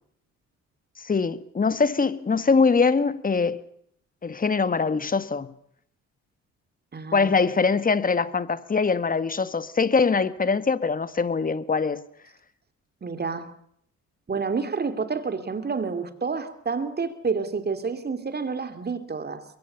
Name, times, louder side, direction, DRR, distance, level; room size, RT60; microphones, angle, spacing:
voice 1, 1.0-3.6 4.2-5.5 7.1-12.0, left 4 dB, 30° left, 1.5 m, -23 dB
voice 2, 6.9-7.3 13.0-13.5 14.3-19.4, right 5 dB, 35° right, 2.9 m, -29 dB
22.5 x 22.5 x 7.0 m
cardioid pair, 90°, 30 cm